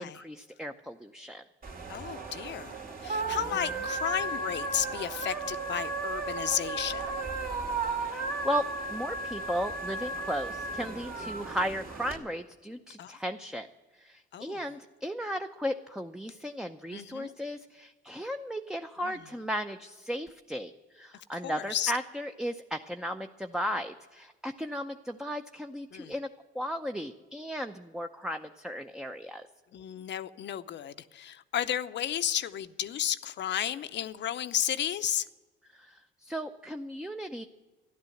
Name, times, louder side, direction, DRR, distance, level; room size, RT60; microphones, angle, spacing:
voice 1, 0.0-1.4 8.0-8.6 8.9-13.7 14.0-26.3 26.5-29.4 35.7-37.4, equal, 5° right, 0.6 m, -35 dB
sound 1, 1.6-12.2, right 3 dB, 50° right, 2.4 m, -35 dB
voice 2, 1.9-7.0 13.0-13.2 14.3-14.6 16.9-17.3 19.0-19.2 21.3-21.9 25.9-26.1 29.7-35.3, left 10 dB, 65° left, 0.7 m, -33 dB
13.0 x 11.5 x 7.8 m
cardioid pair, 90°, 20 cm